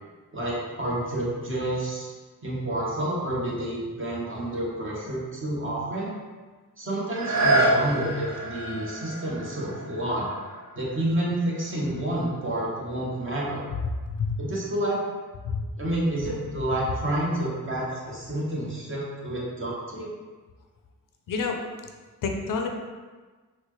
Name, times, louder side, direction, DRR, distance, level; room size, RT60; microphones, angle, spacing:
voice 1, 0.3-2.1 2.4-6.1 6.8-10.3 10.7-13.6 14.4-15.0 15.8-20.1, right 1 dB, 40° right, -5 dB, 1.1 m, -29 dB
sound 1, 7.1-12.7 13.3-13.4, right 2 dB, 55° right, 0.7 m, -28 dB
voice 2, 14.1-14.4 15.4-15.6 21.3-21.6 22.2-22.7, left 5 dB, 75° left, 3 dB, 0.5 m, -28 dB
4.1 x 2.1 x 3.0 m, 1.4 s
wide cardioid pair, 85°, 32 cm